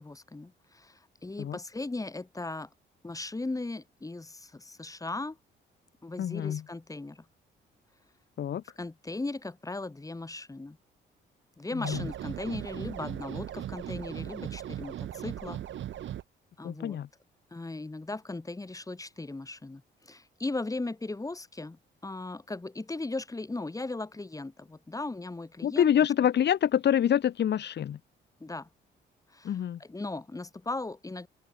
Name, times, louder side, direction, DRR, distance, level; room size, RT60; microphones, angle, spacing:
voice 1, 0.0-2.7 3.0-5.4 6.0-7.3 8.8-10.8 11.6-15.6 16.6-17.0 17.5-25.9 28.4-28.7 29.3-31.3, left 2 dB, 15° left, 3.8 m, -37 dB
voice 2, 6.2-6.6 8.4-8.6 11.8-12.0 16.6-17.1 25.6-28.0 29.4-29.8, left 10 dB, 60° left, 1.8 m, -26 dB
sound 1, 11.8-16.2, right 11 dB, 70° right, 4.4 m, -38 dB
open air
cardioid pair, 90°, 20 cm